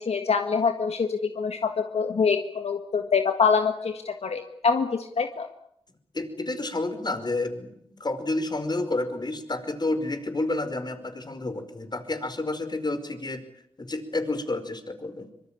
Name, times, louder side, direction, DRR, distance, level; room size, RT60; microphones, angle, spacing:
voice 1, 0.0-5.5, left 5 dB, 80° left, 6 dB, 1.7 m, -25 dB
voice 2, 6.1-13.4 13.8-15.3, left 2 dB, 45° left, 9 dB, 4.9 m, -30 dB
25.0 x 23.5 x 8.9 m, 0.71 s
cardioid pair, 55°, 10 cm